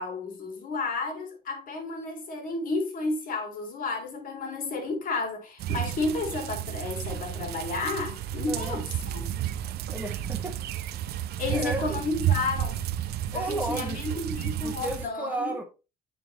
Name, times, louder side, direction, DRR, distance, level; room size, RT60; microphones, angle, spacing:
voice 1, 0.0-9.3 11.4-12.8 13.3-15.6, left 3 dB, 55° left, 2.4 m, -32 dB
sound 1, 5.6-15.1, right 11 dB, 70° right, 0.6 m, -32 dB
voice 2, 8.5-8.8 9.9-10.6 11.5-12.0 13.3-14.2 14.6-15.6, right 2 dB, 10° right, 1.5 m, -33 dB
8.9 x 3.9 x 3.0 m
cardioid pair, 110°, 17 cm